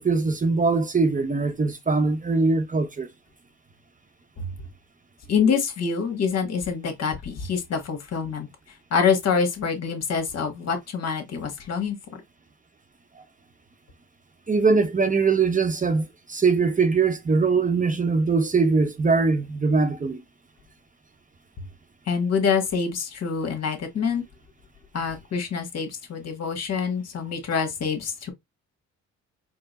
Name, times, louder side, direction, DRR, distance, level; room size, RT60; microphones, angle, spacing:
voice 1, 0.0-3.1 13.2-13.3 14.5-20.2, right 4 dB, 25° right, 0.9 m, -22 dB
voice 2, 4.4-4.7 5.3-12.0 22.1-24.2 24.9-28.3, left 6 dB, 55° left, 1.6 m, -26 dB
4.5 x 2.1 x 4.1 m
cardioid pair, 90°, 30 cm